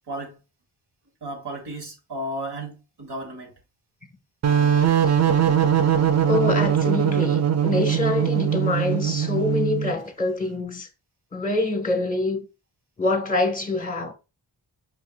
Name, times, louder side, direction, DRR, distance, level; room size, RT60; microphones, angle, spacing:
voice 1, 0.1-0.4 1.2-3.5, right 1 dB, 60° right, 1.5 m, -34 dB
sound 1, 4.4-9.9, right 9 dB, 40° right, 0.5 m, -21 dB
voice 2, 6.3-10.9 11.3-12.4 13.0-14.1, left 2 dB, 15° left, 1.3 m, -25 dB
5.5 x 2.8 x 2.4 m
supercardioid pair, 45°, 45 cm